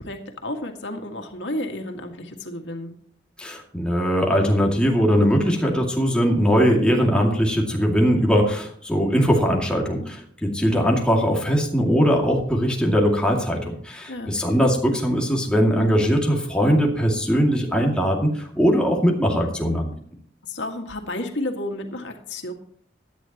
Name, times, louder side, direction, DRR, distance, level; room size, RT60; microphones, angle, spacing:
voice 1, 0.0-2.9 14.1-14.6 20.4-22.5, left 1 dB, 85° left, 3 dB, 2.0 m, -32 dB
voice 2, 3.4-19.9, equal, 5° left, -1 dB, 2.3 m, -20 dB
16.5 x 10.5 x 3.0 m, 0.63 s
head